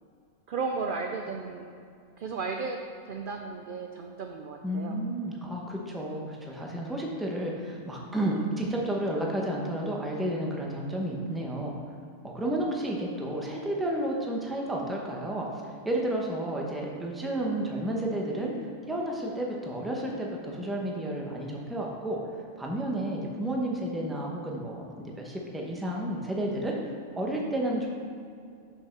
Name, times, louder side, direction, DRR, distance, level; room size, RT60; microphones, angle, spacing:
voice 1, 0.5-1.6 2.2-2.8 3.0-5.0, right 4 dB, 60° right, 3 dB, 0.5 m, -34 dB
voice 2, 4.6-11.8 12.2-15.5 15.8-18.5 18.9-22.2 22.6-26.8 27.2-27.9, right 1 dB, ahead, -2 dB, 0.7 m, -31 dB
6.0 x 5.6 x 5.9 m, 2.4 s
omnidirectional pair, 1.4 m